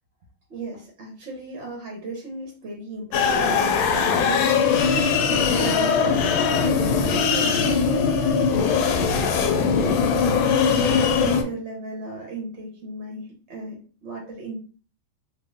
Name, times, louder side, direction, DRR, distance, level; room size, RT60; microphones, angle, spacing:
voice 1, 0.5-14.6, right 2 dB, 55° right, -1 dB, 0.8 m, -37 dB
sound 1, 3.1-11.4, left 5 dB, 90° left, 1.4 m, -20 dB
3.6 x 2.4 x 3.5 m, 0.40 s
omnidirectional pair, 2.2 m